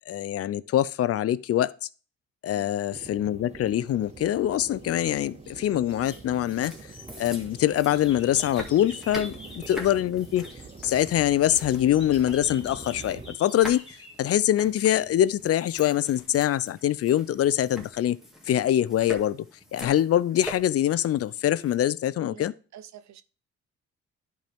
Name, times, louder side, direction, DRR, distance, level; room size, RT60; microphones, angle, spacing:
voice 1, 0.1-1.9 2.4-6.7 7.2-10.4 10.8-18.2 18.5-19.5 19.7-22.5, left 12 dB, 50° left, 0.4 m, -24 dB
sound 1, 2.9-13.4, right 4 dB, 20° right, 0.7 m, -45 dB
sound 2, 4.4-5.1 5.4-9.9 10.2-14.2, left 3 dB, 15° left, 2.1 m, -48 dB
sound 3, 5.9-21.7, left 1 dB, ahead, 1.8 m, -44 dB
voice 2, 22.2-23.2, right 10 dB, 65° right, 0.7 m, -48 dB
10.5 x 4.5 x 3.5 m
cardioid pair, 90°, 30 cm